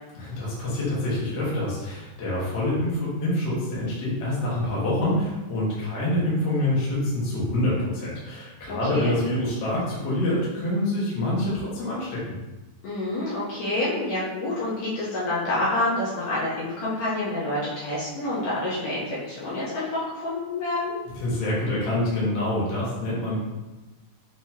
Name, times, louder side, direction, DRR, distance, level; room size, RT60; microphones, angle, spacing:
voice 1, 0.1-12.2 21.1-23.4, left 1 dB, 45° left, -7 dB, 1.5 m, -26 dB
voice 2, 8.7-9.1 12.8-20.9, left 2 dB, 65° left, -9 dB, 2.0 m, -28 dB
6.3 x 3.0 x 2.8 m, 1.1 s
omnidirectional pair, 3.8 m